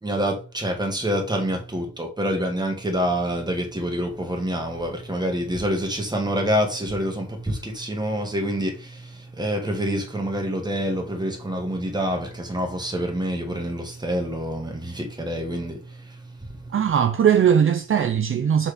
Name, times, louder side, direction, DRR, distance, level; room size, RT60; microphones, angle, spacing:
voice 1, 0.0-16.7, equal, 15° right, 1.8 m, -27 dB
voice 2, 16.7-18.7, right 8 dB, 45° right, 0.6 m, -19 dB
7.1 x 4.3 x 5.1 m
wide cardioid pair, 150°, 29 cm